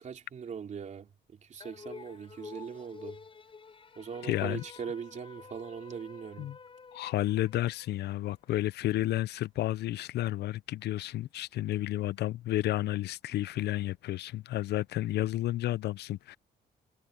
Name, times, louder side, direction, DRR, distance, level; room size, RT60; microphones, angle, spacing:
voice 1, 0.0-3.2 4.0-6.5, right 7 dB, 45° right, 3.2 m, -41 dB
sound 1, 1.6-8.1, left 5 dB, 30° left, 5.7 m, -50 dB
voice 2, 4.2-4.6 6.4-6.6 6.9-16.4, left 15 dB, 75° left, 0.5 m, -31 dB
cardioid pair, 130°, 17 cm